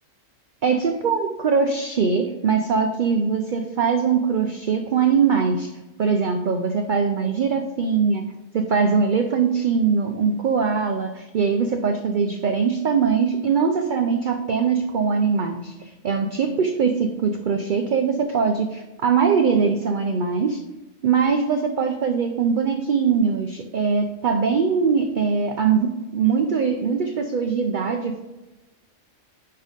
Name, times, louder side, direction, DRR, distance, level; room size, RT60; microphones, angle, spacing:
voice 1, 0.6-5.7 6.0-8.2 8.5-20.6 21.0-28.2, right 5 dB, 55° right, 5 dB, 0.6 m, -22 dB
10.0 x 3.5 x 5.0 m, 1.0 s
omnidirectional pair, 1.3 m